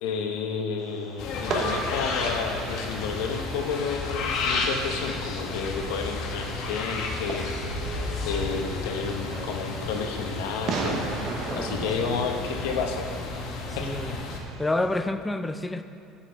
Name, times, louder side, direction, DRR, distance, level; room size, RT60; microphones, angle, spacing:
voice 1, 0.0-7.5 8.3-11.0 11.5-13.2 13.8-14.2, left 5 dB, 85° left, 3 dB, 0.9 m, -31 dB
Fireworks, 0.8-15.0, right 4 dB, 45° right, 0.9 m, -38 dB
sound 1, 1.2-14.4, left 3 dB, 55° left, 1.0 m, -32 dB
sound 2, 7.4-8.9, left 1 dB, 25° left, 1.8 m, -33 dB
voice 2, 13.7-14.1 14.6-15.8, left 2 dB, 10° left, 9 dB, 0.3 m, -29 dB
9.5 x 7.0 x 3.4 m, 2.7 s
cardioid pair, 150°, 0 cm